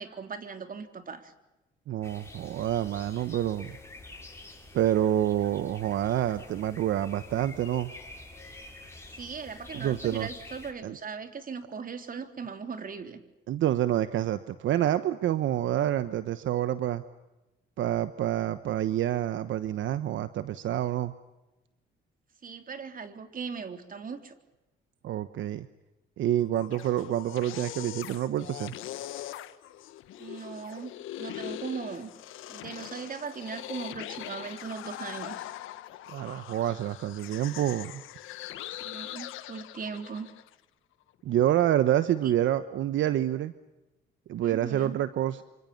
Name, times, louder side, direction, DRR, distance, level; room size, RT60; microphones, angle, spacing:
voice 1, 0.0-1.3 9.2-13.2 22.4-24.3 30.2-32.1 32.5-35.5 38.7-40.3 44.4-45.0, right 5 dB, 45° right, 8 dB, 3.7 m, -39 dB
voice 2, 1.9-3.8 4.7-7.9 9.7-10.3 10.8-11.0 13.5-17.0 17.8-21.1 25.0-25.7 26.2-28.7 36.1-38.0 41.2-43.5 44.3-45.4, right 12 dB, 75° right, 12 dB, 1.1 m, -27 dB
sound 1, 2.0-10.7, left 2 dB, 15° left, 7.4 m, -47 dB
sound 2, 26.4-40.5, left 13 dB, 90° left, 1.4 m, -42 dB
28.0 x 26.5 x 7.2 m, 0.99 s
cardioid pair, 90°, 20 cm